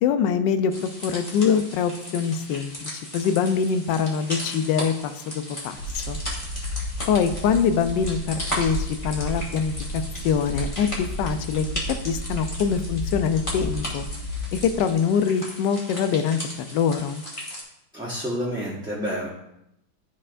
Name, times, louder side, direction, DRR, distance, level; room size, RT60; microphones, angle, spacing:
voice 1, 0.0-6.2 7.1-11.6 12.0-14.1 14.5-16.4 16.7-17.2, left 7 dB, 75° left, 10 dB, 1.2 m, -24 dB
sound 1, 0.7-17.6, equal, 15° left, 1.4 m, -37 dB
sound 2, 5.7-14.8, equal, 40° left, 1.5 m, -33 dB
voice 2, 17.9-19.3, equal, 5° right, -9 dB, 1.0 m, -29 dB
12.5 x 4.4 x 2.5 m, 0.81 s
omnidirectional pair, 2.1 m